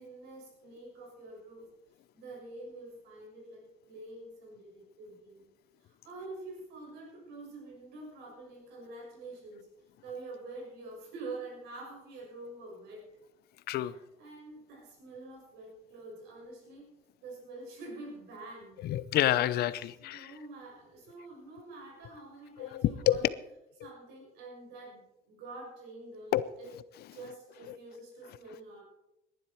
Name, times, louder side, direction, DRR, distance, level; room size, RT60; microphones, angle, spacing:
voice 1, 0.0-1.7 2.1-5.5 5.8-9.7 10.0-13.1 13.9-16.9 17.2-18.7 20.0-23.2 23.8-26.7 27.1-28.8, right 2 dB, 90° right, -1 dB, 6.5 m, -46 dB
voice 2, 18.8-20.3 22.6-23.2 26.3-26.5, left 13 dB, 70° left, 17 dB, 0.7 m, -28 dB
19.5 x 11.0 x 4.6 m, 0.87 s
cardioid pair, 110°, 17 cm